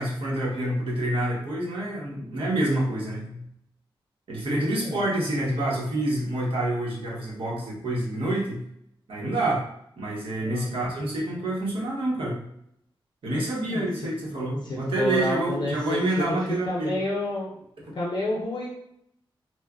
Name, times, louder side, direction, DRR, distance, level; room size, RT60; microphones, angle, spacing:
voice 1, 0.0-3.4 4.3-8.6 9.1-9.7 10.0-12.5 13.2-16.9 17.9-18.0, right 1 dB, 85° right, -4 dB, 0.9 m, -27 dB
voice 2, 10.5-10.9 13.6-14.1 14.6-16.4 16.7-17.5 17.9-18.7, left 1 dB, 55° left, -4 dB, 0.5 m, -30 dB
3.0 x 2.0 x 2.3 m, 0.72 s
wide cardioid pair, 180°, 9 cm